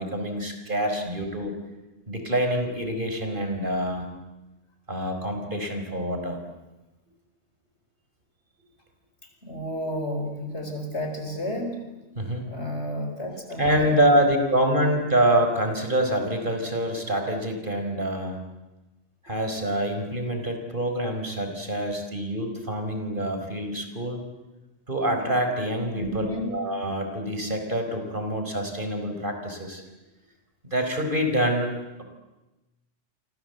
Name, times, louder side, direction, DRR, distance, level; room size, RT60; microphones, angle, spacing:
voice 1, 0.0-1.5 2.1-4.1 4.9-6.4 12.2-12.5 13.6-18.4 19.2-24.2 24.9-29.8 30.6-31.7, right 1 dB, 45° right, 5 dB, 4.6 m, -26 dB
voice 2, 9.4-11.7 12.4-14.0 25.9-26.5, equal, 60° left, 5 dB, 5.4 m, -31 dB
30.0 x 25.0 x 8.0 m, 1.1 s
omnidirectional pair, 1.3 m